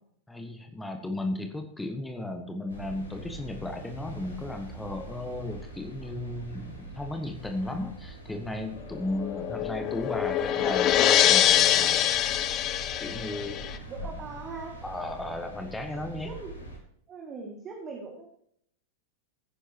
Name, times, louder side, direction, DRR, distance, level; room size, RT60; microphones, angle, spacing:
voice 1, 0.3-12.1 13.0-13.8 14.8-16.3, left 1 dB, 5° left, 5 dB, 1.4 m, -35 dB
sound 1, 2.7-16.8, right 1 dB, 80° left, 3.2 m, -43 dB
sound 2, 8.9-13.8, left 11 dB, 35° left, 0.7 m, -24 dB
voice 2, 13.9-14.8 16.2-16.5 17.1-18.3, right 4 dB, 25° right, 1 dB, 2.1 m, -40 dB
16.5 x 9.9 x 2.9 m, 0.67 s
figure-of-eight pair, 90°, 0 cm